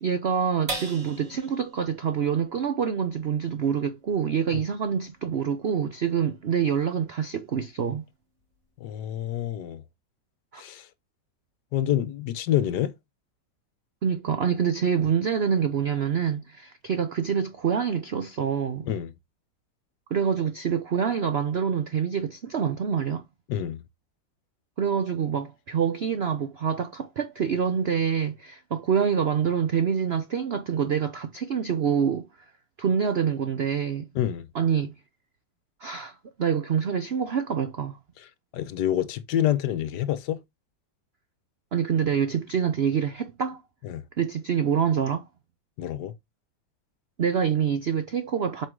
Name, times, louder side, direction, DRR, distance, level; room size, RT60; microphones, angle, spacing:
voice 1, 0.0-8.0 10.5-10.6 14.0-18.9 20.1-23.2 24.8-32.3 32.8-34.1 34.5-34.9 35.8-38.0 41.7-43.6 44.2-45.3 47.2-48.7, right 7 dB, 80° right, 0.5 m, -26 dB
sound 1, 0.7-7.4 7.9-8.0 8.4-8.8, right 2 dB, 45° right, 2.7 m, -42 dB
voice 2, 8.8-9.8 10.6-10.9 11.7-12.9 18.8-19.1 23.5-23.8 34.1-34.5 38.5-40.4 43.8-44.0 45.8-46.1, left 11 dB, 70° left, 1.2 m, -27 dB
7.8 x 4.7 x 3.7 m
omnidirectional pair, 2.0 m